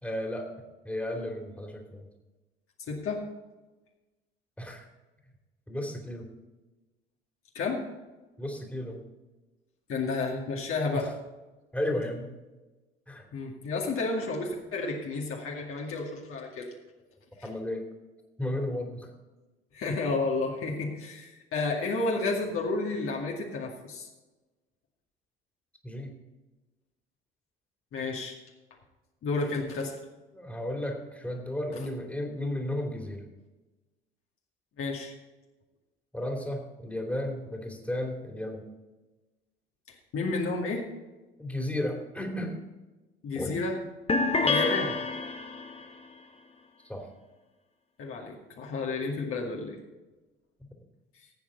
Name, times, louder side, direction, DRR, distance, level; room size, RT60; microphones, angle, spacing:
voice 1, 0.0-0.5 0.8-2.1 4.6-4.8 5.7-6.3 8.4-9.0 10.9-11.1 11.7-12.3 13.1-13.2 17.4-17.8 18.4-19.1 25.8-26.2 30.3-33.2 36.1-38.7 41.4-42.5 43.3-43.5 46.8-47.0, left 1 dB, 5° left, 1 dB, 2.8 m, -33 dB
voice 2, 2.9-3.2 7.5-7.8 9.9-11.1 13.3-16.7 17.4-17.5 19.7-24.1 27.9-28.3 29.2-29.9 31.7-31.9 34.8-35.1 40.1-40.8 43.2-43.8 44.4-45.0 48.0-49.8, left 3 dB, 45° left, -1 dB, 2.3 m, -31 dB
sound 1, 44.1-45.8, left 3 dB, 20° left, 1.2 m, -27 dB
16.5 x 8.6 x 4.0 m, 1.1 s
figure-of-eight pair, 60°, 30 cm